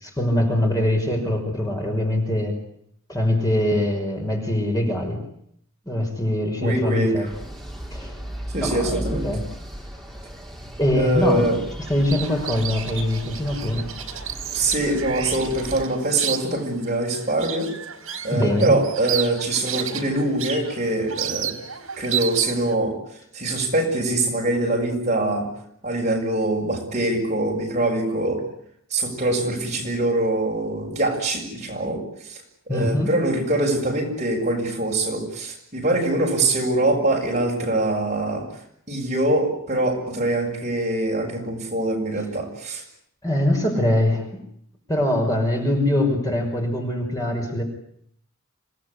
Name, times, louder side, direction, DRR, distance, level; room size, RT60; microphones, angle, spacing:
voice 1, 0.0-2.6 3.1-5.2 5.9-7.3 7.9-8.2 8.6-9.4 10.8-11.5 11.9-13.9 18.3-18.7 32.7-33.1 43.2-44.3 44.9-47.6, left 1 dB, 15° left, 1 dB, 5.6 m, -23 dB
voice 2, 6.6-7.3 8.5-9.3 10.9-11.6 14.5-17.7 18.2-21.6 22.0-23.0 23.3-25.5 25.8-28.4 28.9-32.4 32.7-38.5 38.9-42.8, right 2 dB, 35° right, 0 dB, 6.9 m, -23 dB
sound 1, 7.2-15.8, equal, ahead, 3.0 m, -36 dB
sound 2, 11.9-22.7, right 9 dB, 70° right, 4.6 m, -32 dB
27.0 x 18.5 x 9.8 m, 0.68 s
head